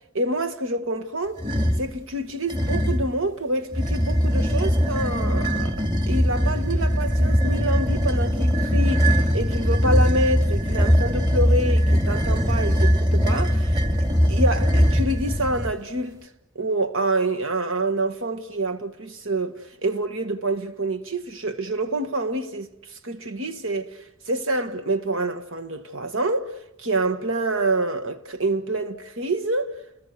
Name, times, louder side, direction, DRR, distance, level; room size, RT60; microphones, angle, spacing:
voice 1, 0.1-1.4 1.8-5.8 6.1-13.8 14.3-16.3 16.6-22.7 23.0-23.9 24.3-26.5 26.8-29.7, right 2 dB, 75° right, 1.7 m, -27 dB
sound 1, 1.4-1.9 2.5-3.1 3.7-15.7, equal, 20° right, 2.6 m, -21 dB
30.0 x 21.5 x 8.0 m
head